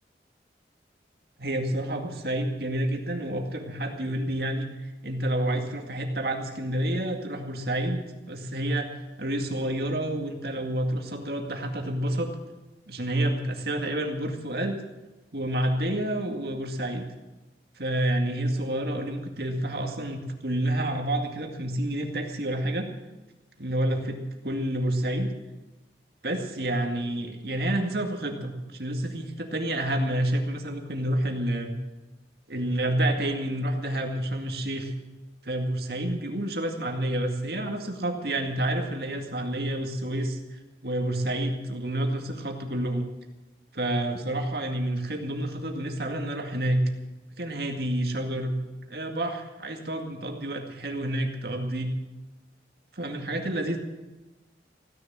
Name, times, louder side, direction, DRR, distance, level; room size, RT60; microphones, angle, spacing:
voice 1, 1.4-8.0 8.3-8.9 9.2-12.3 12.9-14.8 15.3-17.1 17.8-22.9 23.6-25.3 26.2-31.8 32.5-34.9 35.4-43.0 43.7-46.8 47.4-48.6 48.9-51.9 52.9-53.8, right 1 dB, 60° right, 3 dB, 2.2 m, -29 dB
16.0 x 10.5 x 7.5 m, 1.1 s
head